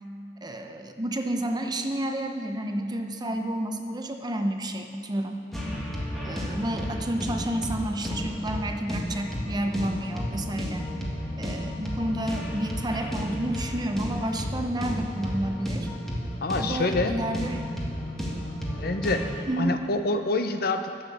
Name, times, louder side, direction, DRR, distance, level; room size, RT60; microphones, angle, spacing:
voice 1, 0.4-5.5 6.2-10.9 11.4-15.9 16.6-17.7 19.5-19.8, right 1 dB, 25° right, 4 dB, 0.8 m, -30 dB
sound 1, 5.5-19.4, equal, ahead, 1.8 m, -32 dB
voice 2, 16.4-17.2 18.3-19.2 19.6-21.0, left 2 dB, 60° left, 8 dB, 0.7 m, -27 dB
11.0 x 7.3 x 7.5 m, 2.4 s
head